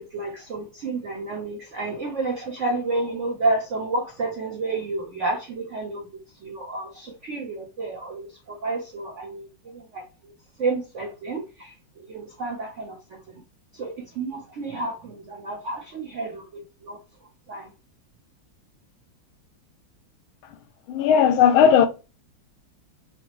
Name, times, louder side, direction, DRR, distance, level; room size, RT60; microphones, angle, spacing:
voice 1, 0.0-6.0 6.4-10.0 10.6-11.7 12.1-13.0 13.7-17.0 17.5-17.7, right 3 dB, 65° right, 0.7 m, -30 dB
voice 2, 20.9-21.9, left 8 dB, 85° left, 1.4 m, -16 dB
5.7 x 2.0 x 3.0 m
omnidirectional pair, 2.2 m